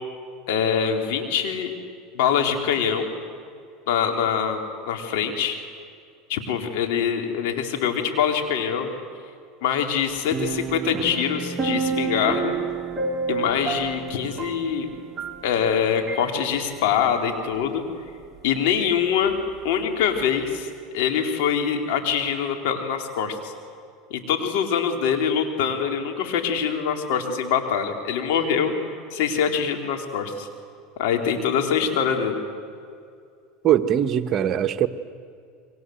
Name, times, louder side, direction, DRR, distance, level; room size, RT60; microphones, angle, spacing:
voice 1, 0.5-1.7 2.1-3.1 3.9-5.6 6.3-8.9 9.6-12.6 13.3-14.9 15.4-17.8 18.4-19.4 19.6-20.7 20.9-23.5 24.1-28.7 29.1-30.5 31.0-32.4, left 7 dB, 70° left, 4 dB, 4.0 m, -24 dB
sound 1, 10.3-15.7 16.1-16.2, right 5 dB, 25° right, 2.6 m, -29 dB
voice 2, 33.6-34.9, right 10 dB, 45° right, 8 dB, 1.4 m, -21 dB
30.0 x 23.5 x 8.1 m, 2.3 s
supercardioid pair, 100°, 0 cm